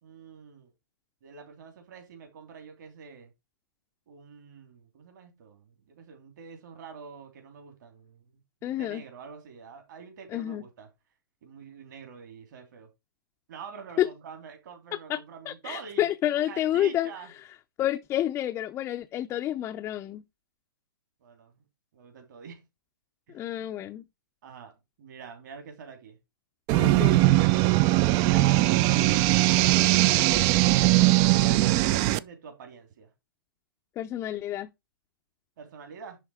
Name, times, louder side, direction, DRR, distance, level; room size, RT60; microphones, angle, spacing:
voice 1, 0.0-0.7 1.2-3.3 4.1-10.9 11.4-12.9 13.5-17.3 21.2-21.5 21.9-22.6 23.3-23.7 24.4-26.2 26.7-27.6 28.0-30.3 31.0-33.1 35.6-36.2, right 6 dB, 55° right, 3.1 m, -46 dB
voice 2, 8.6-9.0 10.3-10.6 14.0-14.1 15.1-15.2 15.5-17.1 17.8-20.2 23.3-24.0 26.8-27.2 34.0-34.7, left 12 dB, 20° left, 0.6 m, -29 dB
sound 1, 26.7-32.2, right 17 dB, 30° right, 0.4 m, -20 dB
11.0 x 3.7 x 4.9 m
hypercardioid pair, 130°, 12 cm